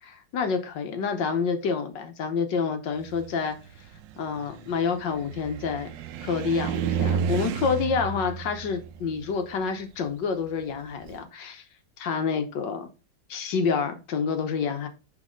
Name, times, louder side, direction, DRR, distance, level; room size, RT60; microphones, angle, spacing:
voice 1, 0.0-3.5 4.2-5.9 6.2-11.6 12.0-12.9 13.3-14.9, left 5 dB, 70° left, 1.6 m, -28 dB
Car, 3.0-11.2, right 7 dB, 80° right, 1.3 m, -33 dB
6.2 x 4.1 x 5.1 m
omnidirectional pair, 2.0 m